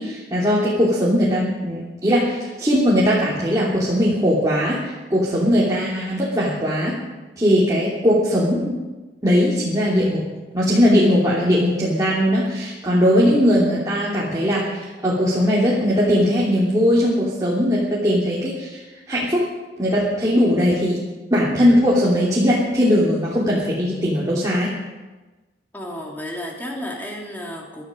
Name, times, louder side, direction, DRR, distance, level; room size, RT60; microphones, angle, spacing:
voice 1, 0.0-6.9 7.4-8.8 9.2-10.2 10.5-18.8 19.1-19.4 19.8-21.0 21.3-24.7, equal, 20° right, -7 dB, 3.0 m, -19 dB
voice 2, 25.7-27.8, left 1 dB, 10° left, -1 dB, 2.8 m, -32 dB
22.5 x 12.5 x 5.2 m, 1.2 s
head